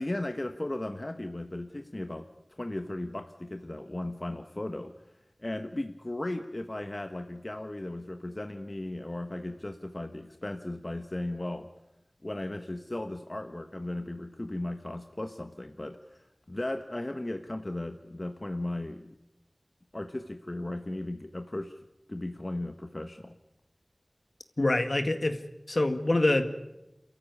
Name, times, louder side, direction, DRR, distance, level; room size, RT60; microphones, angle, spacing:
voice 1, 0.0-2.3 2.6-4.9 5.4-11.7 12.2-19.0 19.9-21.8 22.1-23.4, left 1 dB, 45° left, 7 dB, 1.2 m, -36 dB
voice 2, 24.6-25.4 25.7-26.5, left 2 dB, 65° left, 7 dB, 2.0 m, -25 dB
28.0 x 14.0 x 9.8 m, 0.95 s
wide cardioid pair, 40°, 0 cm